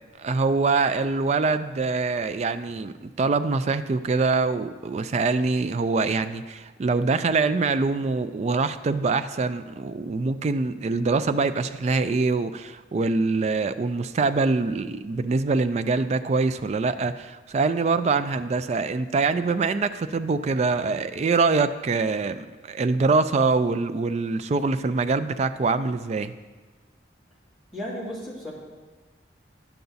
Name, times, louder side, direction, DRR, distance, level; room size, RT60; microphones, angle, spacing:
voice 1, 0.2-26.3, right 4 dB, 35° right, 11 dB, 0.3 m, -24 dB
voice 2, 27.7-28.5, equal, ahead, -9 dB, 2.3 m, -34 dB
10.5 x 6.9 x 4.0 m, 1.3 s
head